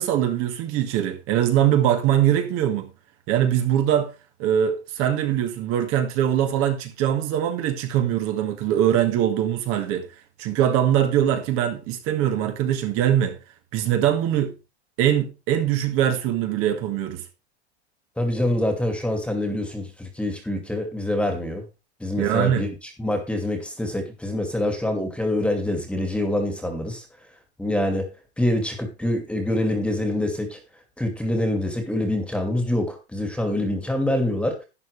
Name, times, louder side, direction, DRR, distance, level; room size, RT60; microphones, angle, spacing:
voice 1, 0.0-2.9 3.3-4.1 4.4-10.1 10.4-13.4 13.7-14.5 15.0-17.2 22.2-22.7, right 10 dB, 40° right, 2.0 m, -22 dB
voice 2, 18.2-21.6 22.0-22.7 23.0-27.0 27.6-28.1 28.4-30.6 31.0-34.6, left 1 dB, 5° left, 2.3 m, -25 dB
12.0 x 9.5 x 3.3 m
supercardioid pair, 140°, 34 cm